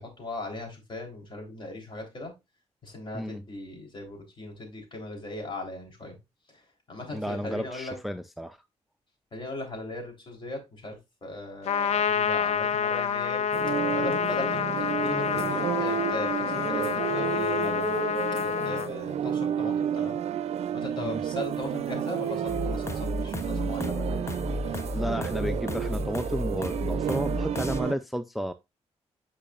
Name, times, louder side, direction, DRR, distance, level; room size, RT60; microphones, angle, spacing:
voice 1, 0.0-2.3 2.8-6.2 6.5-8.0 9.3-17.9 18.3-20.2 20.7-24.9, left 2 dB, 45° left, 3.6 m, -38 dB
voice 2, 7.1-8.6 21.0-21.2 24.9-28.5, equal, ahead, 0.4 m, -32 dB
Trumpet, 11.7-18.9, left 7 dB, 70° left, 0.5 m, -28 dB
sound 1, 13.5-28.0, right 9 dB, 65° right, 0.4 m, -31 dB
sound 2, 22.5-27.8, left 2 dB, 25° left, 0.8 m, -33 dB
8.7 x 5.5 x 2.4 m
cardioid pair, 85°, 11 cm